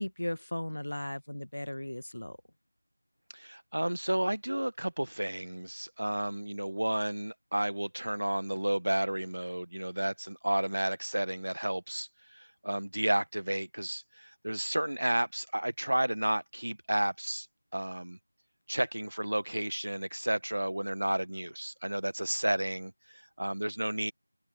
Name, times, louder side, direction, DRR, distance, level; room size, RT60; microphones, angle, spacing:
voice 1, 0.0-2.4, left 1 dB, 65° left, 1.5 m, -36 dB
voice 2, 3.3-17.5 17.7-18.2 18.7-24.1, right 1 dB, 65° right, 1.6 m, -32 dB
figure-of-eight pair, 170°, 0 cm